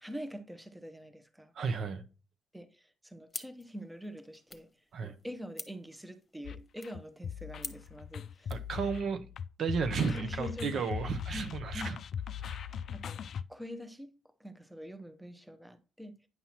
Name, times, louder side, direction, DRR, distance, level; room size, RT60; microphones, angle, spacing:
voice 1, 0.0-1.5 2.5-4.7 5.0-8.5 10.1-11.0 11.3-12.0 12.9-13.2 13.5-16.2, equal, 5° right, 0.7 m, -45 dB
voice 2, 1.5-2.0 4.9-5.1 8.5-9.3 9.6-12.0 12.4-12.7, right 5 dB, 60° right, 0.7 m, -33 dB
sound 1, 3.3-8.7, left 3 dB, 25° left, 1.1 m, -49 dB
sound 2, 6.4-13.4, left 8 dB, 60° left, 0.3 m, -40 dB
9.4 x 5.6 x 2.9 m
cardioid pair, 90°, 0 cm